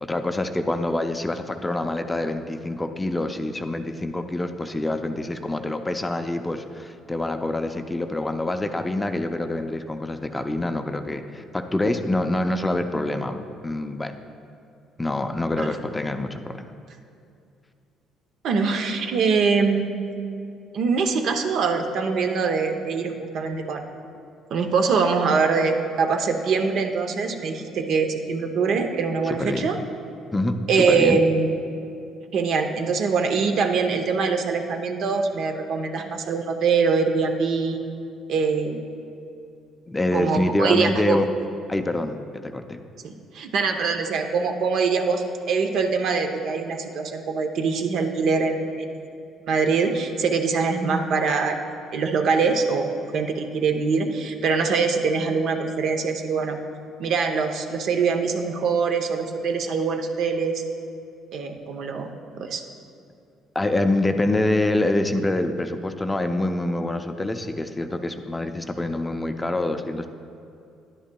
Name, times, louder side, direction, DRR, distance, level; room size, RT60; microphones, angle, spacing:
voice 1, 0.0-14.1 15.0-16.6 29.2-29.7 30.3-31.2 39.9-41.3 41.7-42.8 63.6-70.1, left 1 dB, 15° left, 7 dB, 0.4 m, -26 dB
voice 2, 18.4-19.9 20.7-23.8 24.5-29.8 30.7-31.5 32.3-37.8 38.3-38.8 40.1-41.2 43.0-49.1 49.5-51.6 51.9-52.9 53.1-56.6 57.0-60.6 61.3-62.1 62.4-62.6, right 5 dB, 65° right, 5 dB, 0.7 m, -23 dB
11.0 x 10.0 x 2.3 m, 2.5 s
cardioid pair, 110°, 0 cm